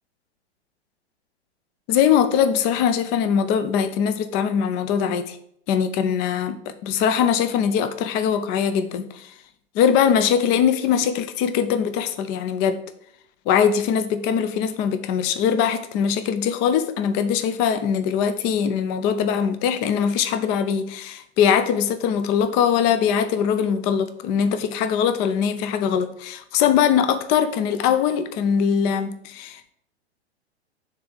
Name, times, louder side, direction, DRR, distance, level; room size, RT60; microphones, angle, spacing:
voice 1, 1.9-5.4 5.7-9.3 9.7-12.8 13.5-29.7, left 8 dB, 30° left, 0.6 m, -21 dB
7.6 x 3.4 x 6.4 m
figure-of-eight pair, 105°, 33 cm